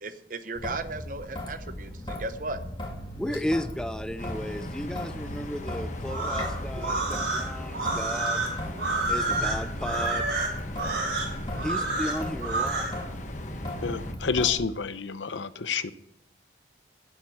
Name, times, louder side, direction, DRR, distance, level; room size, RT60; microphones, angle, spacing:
voice 1, 0.0-2.6, right 3 dB, 45° right, 10 dB, 0.9 m, -36 dB
Traffic noise roadway noise / Drip / Trickle dribble, 0.6-14.6, left 1 dB, 25° left, 1.9 m, -37 dB
voice 2, 3.2-8.4 9.1-10.3 11.6-12.9, equal, 5° left, 10 dB, 0.6 m, -34 dB
sound 1, 4.2-14.1, left 1 dB, 40° left, 1.0 m, -40 dB
sound 2, 6.0-12.9, right 2 dB, 65° right, 3.9 m, -29 dB
voice 3, 13.8-15.9, left 6 dB, 90° left, 14 dB, 0.7 m, -29 dB
10.5 x 7.4 x 9.2 m, 0.81 s
head